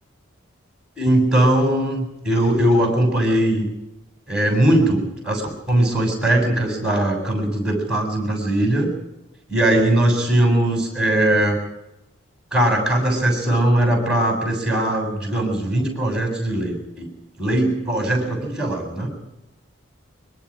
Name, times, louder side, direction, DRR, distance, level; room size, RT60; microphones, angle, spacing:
voice 1, 1.0-3.7 4.3-8.9 9.5-11.6 12.5-17.1 17.4-19.1, right 1 dB, 5° right, 2 dB, 7.4 m, -20 dB
25.5 x 22.5 x 5.0 m, 0.89 s
head